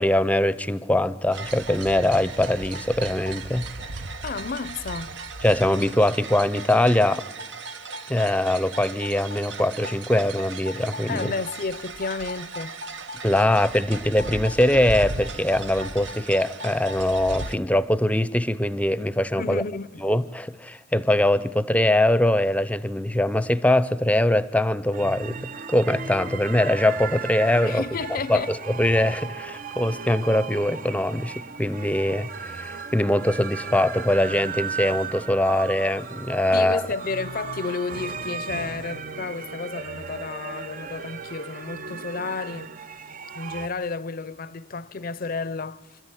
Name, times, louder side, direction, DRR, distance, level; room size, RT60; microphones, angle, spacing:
voice 1, 0.0-3.7 5.4-7.2 8.1-11.3 13.2-19.6 20.0-27.8 28.3-36.8, left 1 dB, 10° left, 0.7 m, -22 dB
sound 1, 1.3-17.6, right 3 dB, 75° right, 1.1 m, -36 dB
voice 2, 4.2-5.2 11.1-12.8 19.4-20.0 27.6-28.5 36.5-42.8 43.4-46.0, left 4 dB, 50° left, 0.6 m, -32 dB
sound 2, 24.9-43.7, right 5 dB, 50° right, 0.7 m, -36 dB
26.0 x 14.0 x 9.9 m
head